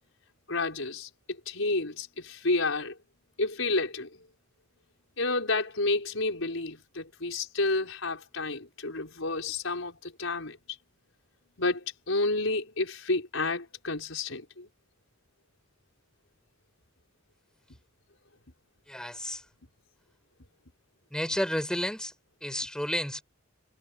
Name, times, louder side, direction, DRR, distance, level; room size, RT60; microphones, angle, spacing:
voice 1, 0.5-3.0 3.4-4.2 5.2-10.8 11.6-14.7, left 2 dB, 85° left, 4.8 m, -30 dB
voice 2, 18.9-19.4 21.1-22.1 22.4-23.2, equal, 5° left, 7.9 m, -31 dB
head